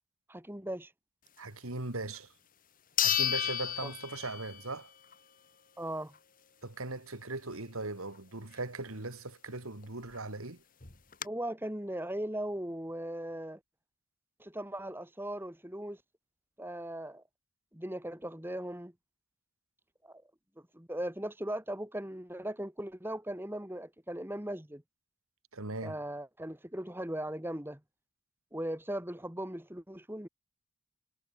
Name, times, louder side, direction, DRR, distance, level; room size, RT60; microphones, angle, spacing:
voice 1, 0.3-0.9 3.8-3.9 5.8-6.1 11.2-13.6 14.4-16.0 16.6-17.2 17.7-18.9 20.0-20.2 20.7-24.8 25.8-27.8 28.5-30.3, right 1 dB, 10° right, 2.1 m, -38 dB
voice 2, 1.4-2.3 3.0-4.9 6.6-10.6 25.5-26.0, right 2 dB, 80° right, 2.8 m, -39 dB
sound 1, 2.1-2.2 3.0-4.7 5.1-5.2 9.8-9.9 10.1-10.2 10.8-11.3, left 10 dB, 40° left, 2.3 m, -31 dB
head